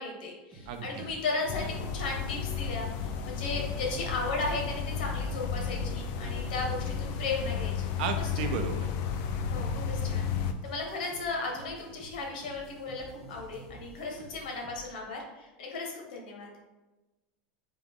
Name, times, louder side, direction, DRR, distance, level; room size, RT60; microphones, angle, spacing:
voice 1, 0.0-8.5 9.5-16.5, left 3 dB, 80° left, 0 dB, 1.2 m, -36 dB
sound 1, 0.5-15.1, right 2 dB, 10° right, 1.0 m, -50 dB
voice 2, 0.7-1.1 8.0-9.2, right 6 dB, 65° right, 7 dB, 0.5 m, -34 dB
sound 2, 1.5-10.5, left 6 dB, 50° left, 0.3 m, -33 dB
3.8 x 3.0 x 3.6 m, 1.1 s
supercardioid pair, 155°, 5 cm